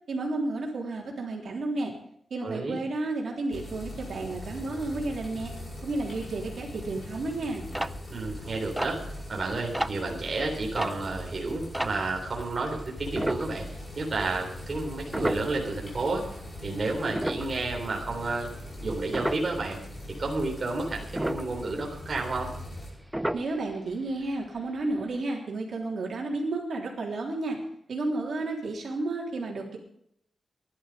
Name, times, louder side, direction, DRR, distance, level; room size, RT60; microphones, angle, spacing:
voice 1, 0.1-1.9 2.3-5.5 5.8-7.6 23.3-27.6 27.9-29.8, right 2 dB, 60° right, -1 dB, 3.5 m, -32 dB
voice 2, 2.4-2.8 8.1-9.0 9.3-13.6 14.0-18.5 18.8-19.8 20.2-22.5, right 3 dB, 35° right, -1 dB, 3.4 m, -31 dB
sound 1, 3.5-22.9, left 1 dB, 35° left, 5.3 m, -41 dB
sound 2, 7.2-12.4 13.1-14.1 14.4-14.6 15.1-16.4 16.8-19.7 20.0-20.5 20.9-22.9 23.1-23.9 24.3-24.4 24.6-24.8 25.2-25.3, right 1 dB, 5° right, 0.5 m, -33 dB
16.5 x 11.5 x 5.2 m, 0.71 s
wide cardioid pair, 175°, 0 cm